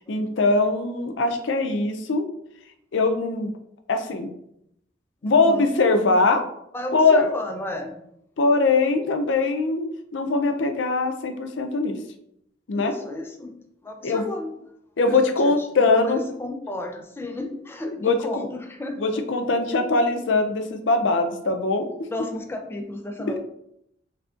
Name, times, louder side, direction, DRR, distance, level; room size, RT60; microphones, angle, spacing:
voice 1, 0.1-2.3 2.9-3.5 3.9-4.3 5.2-6.4 6.9-7.3 8.4-12.0 12.7-12.9 14.0-14.2 15.0-16.2 18.0-18.5 19.0-21.9, left 3 dB, 75° left, 6 dB, 0.5 m, -21 dB
voice 2, 5.2-5.7 6.7-8.0 12.7-14.5 15.1-19.0 22.1-23.4, left 1 dB, 10° left, 4 dB, 0.3 m, -33 dB
3.7 x 3.3 x 2.4 m, 0.76 s
head